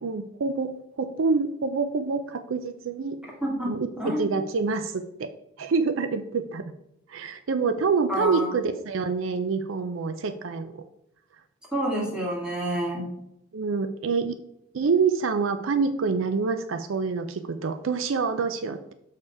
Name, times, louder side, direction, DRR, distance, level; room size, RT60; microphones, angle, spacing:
voice 1, 0.0-3.2 3.7-5.3 5.6-6.6 7.1-10.8 13.5-14.4 14.7-18.9, right 4 dB, 65° right, 10 dB, 0.5 m, -26 dB
voice 2, 3.4-4.2 8.1-8.5 11.7-13.1, equal, 5° right, -4 dB, 2.2 m, -28 dB
6.7 x 5.4 x 4.7 m, 0.81 s
head